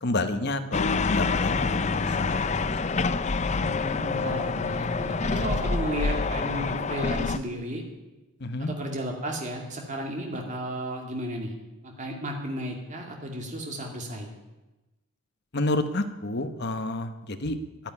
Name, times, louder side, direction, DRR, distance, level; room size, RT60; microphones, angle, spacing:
voice 1, 0.0-1.7 2.2-2.3 8.4-8.7 15.5-17.6, left 2 dB, 50° left, 9 dB, 1.1 m, -29 dB
sound 1, 0.7-7.4, left 4 dB, 30° left, 0.5 m, -27 dB
voice 2, 3.5-7.8 8.6-11.5 11.8-14.3, equal, 35° right, 1 dB, 2.4 m, -34 dB
11.0 x 10.5 x 9.6 m, 1.1 s
head